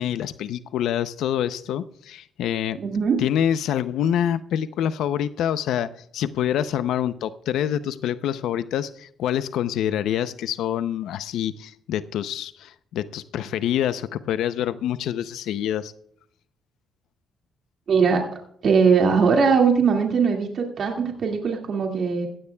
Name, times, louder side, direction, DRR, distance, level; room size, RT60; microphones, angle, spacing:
voice 1, 0.0-2.8 3.2-15.9, left 10 dB, 80° left, 13 dB, 0.6 m, -26 dB
voice 2, 2.8-3.2 17.9-18.3 18.6-22.3, right 5 dB, 60° right, 1 dB, 2.1 m, -20 dB
16.0 x 15.5 x 2.3 m, 0.66 s
cardioid pair, 90°, 0 cm